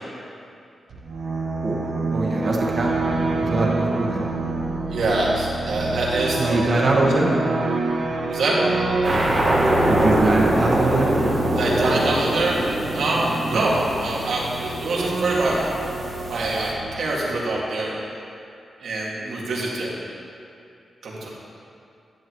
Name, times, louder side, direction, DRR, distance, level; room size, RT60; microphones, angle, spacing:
sound 1, 0.9-17.5, right 2 dB, 65° right, 1.1 m, -27 dB
voice 1, 1.6-4.3 6.4-7.3 9.8-11.1 13.5-13.7, right 2 dB, 45° right, -2 dB, 1.5 m, -23 dB
voice 2, 4.9-7.1 8.3-8.6 11.5-15.6 16.3-17.9 18.8-19.9 21.0-21.3, right 2 dB, 85° right, -5 dB, 2.1 m, -25 dB
sound 2, 9.0-16.7, right 1 dB, 25° right, 1.8 m, -24 dB
10.5 x 10.5 x 3.1 m, 2.5 s
wide cardioid pair, 140°, 0 cm